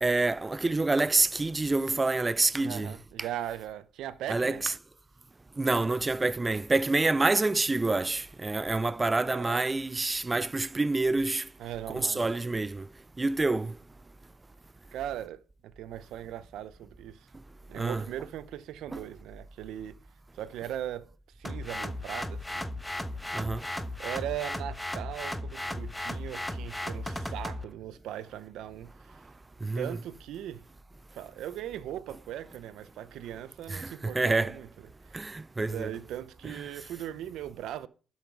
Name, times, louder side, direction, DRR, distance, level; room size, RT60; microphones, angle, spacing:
voice 1, 0.0-2.9 4.3-4.7 5.6-11.5 11.9-12.8 13.2-13.7 17.8-18.1 18.9-19.0 23.3-23.6 29.6-30.0 33.7-34.6 35.1-35.9 36.4-36.6, right 3 dB, 20° right, 0.4 m, -27 dB
voice 2, 2.6-4.7 9.3-9.6 11.6-12.3 14.9-17.3 17.7-20.0 20.3-21.1 21.4-22.7 24.0-29.2 29.7-30.6 31.1-34.7 35.1-37.9, right 11 dB, 85° right, 0.7 m, -39 dB
sound 1, 21.4-27.6, left 1 dB, 5° left, 1.1 m, -35 dB
12.0 x 5.8 x 4.7 m
cardioid pair, 90°, 0 cm